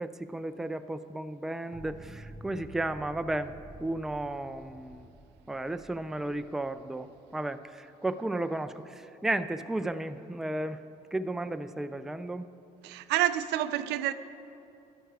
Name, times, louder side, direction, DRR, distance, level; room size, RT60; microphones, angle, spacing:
voice 1, 0.0-3.5 3.8-5.1 5.5-10.8 11.1-12.5, right 2 dB, 5° right, 0.4 m, -34 dB
sound 1, 1.7-7.4, right 2 dB, 25° right, 0.8 m, -50 dB
voice 2, 12.8-14.1, right 13 dB, 85° right, 0.5 m, -28 dB
13.0 x 10.5 x 4.7 m
cardioid pair, 110°, 17 cm